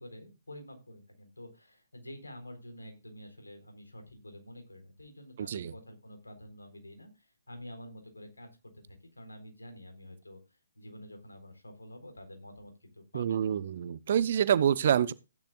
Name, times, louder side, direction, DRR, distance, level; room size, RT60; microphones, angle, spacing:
voice 1, 0.0-13.5, left 1 dB, 85° left, 4.0 m, -49 dB
voice 2, 5.4-5.7 13.1-15.1, right 9 dB, 50° right, 0.7 m, -27 dB
15.5 x 10.5 x 2.4 m
figure-of-eight pair, 135°, 0 cm